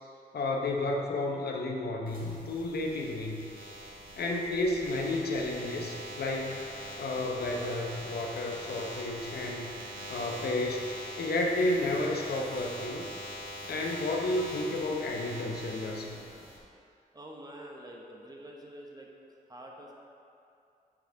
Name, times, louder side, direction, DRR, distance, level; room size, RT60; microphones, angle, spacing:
voice 1, 0.3-3.4 4.2-6.7 7.0-9.7 10.1-10.9 11.2-13.1 13.7-16.2, left 2 dB, 70° left, 0 dB, 0.9 m, -31 dB
sound 1, 2.1-16.6, equal, 55° right, 1.7 m, -43 dB
voice 2, 17.1-19.1 19.5-19.9, right 1 dB, 25° right, -1 dB, 1.1 m, -46 dB
6.7 x 5.9 x 3.9 m, 2.6 s
cardioid pair, 70°, 17 cm